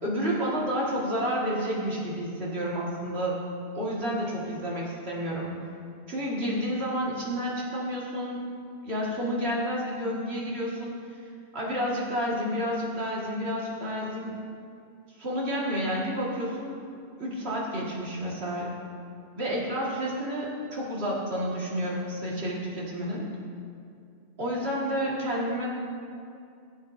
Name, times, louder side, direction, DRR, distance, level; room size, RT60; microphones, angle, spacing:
voice 1, 0.0-3.4 3.7-5.5 6.1-8.5 8.8-11.0 11.5-14.4 15.2-16.8 17.2-18.7 19.4-23.3 24.4-25.7, equal, 65° right, -5 dB, 2.2 m, -30 dB
16.0 x 7.7 x 2.7 m, 2.4 s
omnidirectional pair, 1.2 m